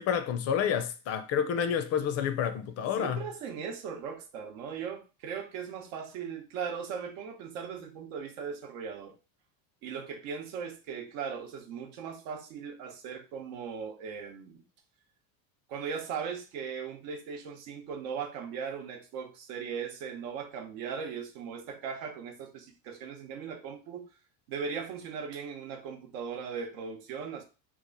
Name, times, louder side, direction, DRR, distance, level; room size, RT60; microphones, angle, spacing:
voice 1, 0.0-3.2, left 8 dB, 40° left, 0.4 m, -29 dB
voice 2, 3.0-9.2 9.8-14.6 15.7-24.1 24.5-27.4, right 6 dB, 80° right, 0.9 m, -38 dB
3.0 x 2.4 x 3.8 m
cardioid pair, 130°, 40 cm